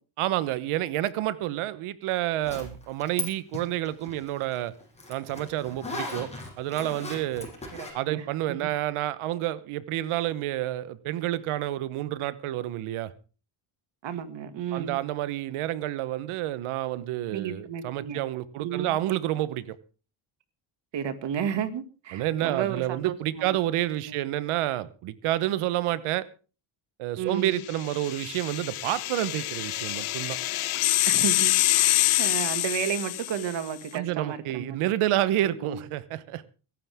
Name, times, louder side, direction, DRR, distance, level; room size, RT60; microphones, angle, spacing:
voice 1, 0.2-4.7 5.1-6.3 6.6-7.5 7.9-13.1 14.7-19.8 22.1-26.2 27.0-30.4 33.9-36.4, right 14 dB, 85° right, 1.2 m, -29 dB
Zipper (clothing), 2.4-3.3 3.5-7.9, left 2 dB, 15° left, 7.4 m, -37 dB
voice 2, 7.7-8.7 14.0-15.0 17.3-18.2 18.6-18.9 20.9-23.6 24.1-24.2 27.2-27.6 31.1-34.8 35.4-35.8, right 8 dB, 60° right, 2.2 m, -33 dB
sound 1, 27.7-33.6, left 16 dB, 85° left, 1.1 m, -26 dB
22.0 x 12.0 x 3.6 m
cardioid pair, 120°, 49 cm